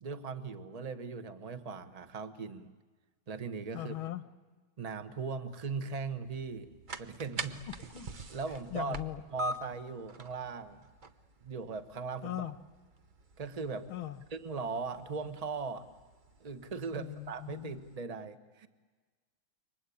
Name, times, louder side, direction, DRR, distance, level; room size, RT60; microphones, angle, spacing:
voice 1, 0.0-2.7 3.3-3.9 4.8-6.7 7.0-7.6 8.3-9.0 9.3-10.8 11.4-12.5 13.4-13.9 14.3-15.9 16.4-18.7, right 4 dB, 25° right, 9 dB, 1.0 m, -39 dB
voice 2, 3.7-4.2 7.7-8.1 8.7-9.2 12.2-12.6 13.9-14.2 16.9-17.8, left 13 dB, 80° left, 11 dB, 2.0 m, -39 dB
sound 1, 6.2-18.0, right 1 dB, 45° right, 0.6 m, -46 dB
29.0 x 24.0 x 8.6 m, 1.4 s
omnidirectional pair, 2.3 m